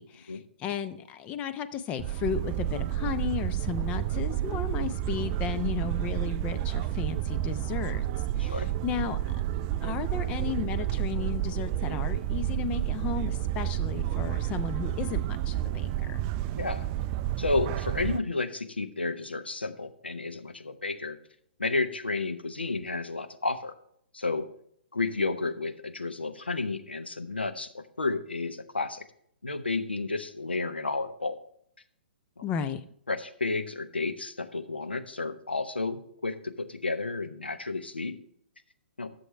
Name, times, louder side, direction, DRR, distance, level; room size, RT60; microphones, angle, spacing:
voice 1, 0.0-8.0 8.4-9.4 9.8-16.2 32.4-32.8, left 7 dB, 20° left, 9 dB, 0.6 m, -34 dB
sound 1, 2.0-18.2, right 12 dB, 30° right, 0.4 m, -30 dB
voice 2, 8.4-8.7 16.5-16.9 17.4-21.2 21.6-23.7 24.1-24.5 24.9-29.0 29.4-31.4 32.4-32.5 33.1-38.2 39.0-39.1, left 3 dB, 80° left, 8 dB, 0.9 m, -31 dB
14.0 x 7.1 x 3.3 m, 0.68 s
figure-of-eight pair, 120°, 6 cm